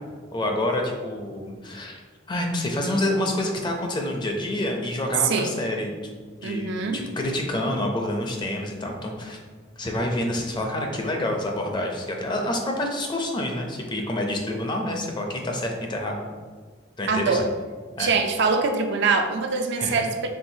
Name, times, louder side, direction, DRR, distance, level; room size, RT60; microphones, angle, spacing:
voice 1, 0.3-2.0 2.3-6.1 6.4-9.4 9.8-16.2 17.0-17.4 18.0-18.1 19.8-20.0, left 1 dB, 20° left, 2 dB, 0.5 m, -28 dB
voice 2, 6.4-7.0 17.1-17.5 18.0-20.3, right 4 dB, 55° right, 4 dB, 0.4 m, -23 dB
4.5 x 3.6 x 2.7 m, 1.5 s
head